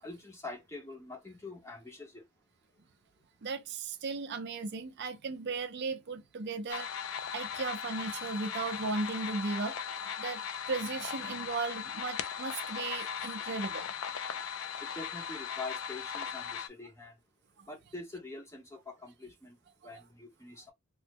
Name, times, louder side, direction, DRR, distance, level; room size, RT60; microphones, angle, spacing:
voice 1, 0.0-2.2 14.8-17.1 17.7-19.6 19.8-20.6, left 3 dB, 15° left, 0.7 m, -45 dB
voice 2, 3.4-6.9 7.2-9.8 10.2-13.9 17.6-17.7 19.9-20.0, right 3 dB, 50° right, 0.4 m, -36 dB
sound 1, 6.7-16.7, left 7 dB, 70° left, 0.4 m, -38 dB
3.1 x 2.1 x 3.3 m
head